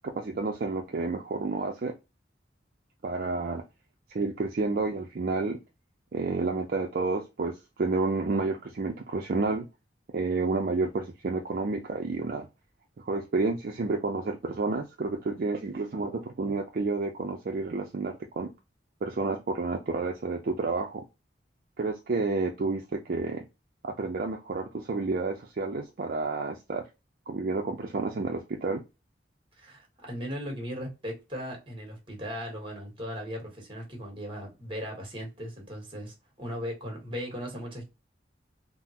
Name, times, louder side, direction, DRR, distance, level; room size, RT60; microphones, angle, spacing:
voice 1, 0.1-1.9 3.0-3.6 4.1-5.6 6.1-9.7 10.1-12.5 13.0-18.5 19.0-21.0 21.8-23.4 23.8-26.8 27.3-28.8, right 3 dB, 55° right, 0.4 m, -30 dB
voice 2, 29.6-37.8, equal, 30° right, 1.3 m, -37 dB
3.6 x 2.0 x 2.7 m
head